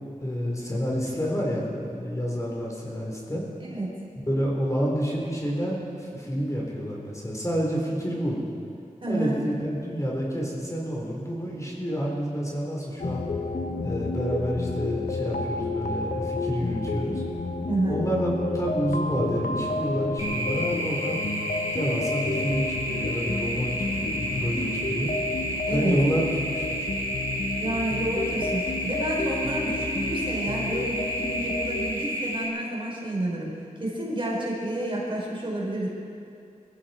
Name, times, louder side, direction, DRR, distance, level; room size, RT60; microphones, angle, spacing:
voice 1, 0.2-3.4 4.2-8.4 9.1-13.2 13.8-17.2 17.9-21.2 21.7-25.1 25.7-26.2 26.5-26.9, equal, 25° left, -3 dB, 4.0 m, -29 dB
voice 2, 3.6-4.0 9.0-9.3 17.7-18.0 25.7-26.0 27.6-33.5 33.8-35.9, right 1 dB, 40° right, -3 dB, 4.5 m, -29 dB
sound 1, 13.0-31.9, left 3 dB, 75° left, 1.0 m, -31 dB
sound 2, 20.2-32.5, right 1 dB, 25° right, 4.6 m, -31 dB
22.5 x 14.5 x 4.5 m, 2.5 s
wide cardioid pair, 60°, 14 cm